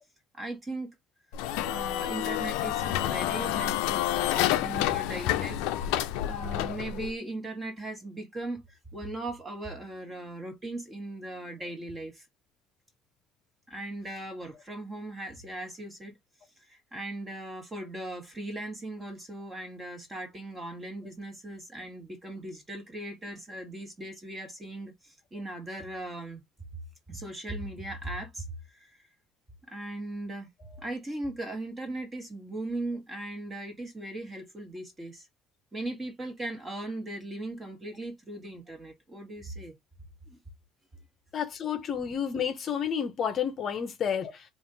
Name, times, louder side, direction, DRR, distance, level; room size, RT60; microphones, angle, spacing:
voice 1, 0.3-0.9 1.6-12.2 13.7-16.1 16.7-26.4 27.1-28.9 29.7-30.5 30.8-35.3 35.7-39.7 40.3-40.4, right 1 dB, 20° right, 1.6 m, -38 dB
sound 1, 1.3-7.1, left 13 dB, 85° left, 0.5 m, -29 dB
voice 2, 41.3-44.4, left 8 dB, 40° left, 0.8 m, -30 dB
3.6 x 2.5 x 3.9 m
cardioid pair, 125°, 0 cm